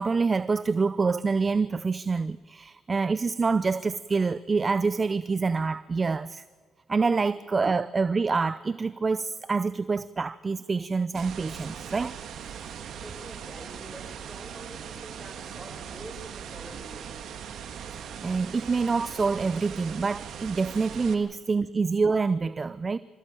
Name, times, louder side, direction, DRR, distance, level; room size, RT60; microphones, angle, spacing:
voice 1, 0.0-6.4 6.9-12.1 17.9-23.0, right 4 dB, 30° right, 0.5 m, -26 dB
sound 1, 11.1-21.1, right 8 dB, 70° right, 2.1 m, -40 dB
voice 2, 12.9-17.2, right 1 dB, 15° right, 5.0 m, -46 dB
25.5 x 15.0 x 9.1 m
cardioid pair, 90°, 0 cm